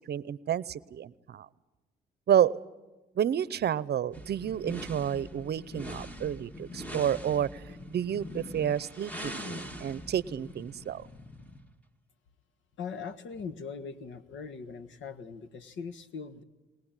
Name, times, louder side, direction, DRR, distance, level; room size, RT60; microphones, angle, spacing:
voice 1, 0.1-1.5 2.3-2.6 3.2-7.6 7.9-11.1, right 9 dB, 55° right, 19 dB, 0.8 m, -30 dB
sound 1, 4.1-11.7, left 1 dB, 5° left, 1.8 m, -43 dB
voice 2, 12.8-16.4, left 5 dB, 70° left, 12 dB, 1.6 m, -40 dB
20.5 x 20.5 x 9.0 m, 1.1 s
cardioid pair, 90°, 20 cm